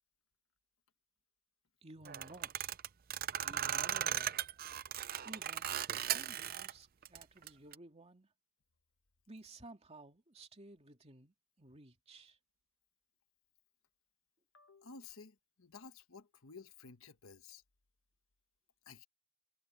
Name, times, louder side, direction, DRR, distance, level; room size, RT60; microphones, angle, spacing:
voice 1, 1.8-2.7 3.4-4.4 5.2-8.3 9.3-12.4, right 2 dB, 30° right, 2.5 m, -55 dB
sound 1, 2.1-6.7 7.0-7.8, right 10 dB, 45° right, 0.6 m, -37 dB
voice 2, 14.5-17.6 18.9-19.1, left 5 dB, 70° left, 1.3 m, -54 dB
head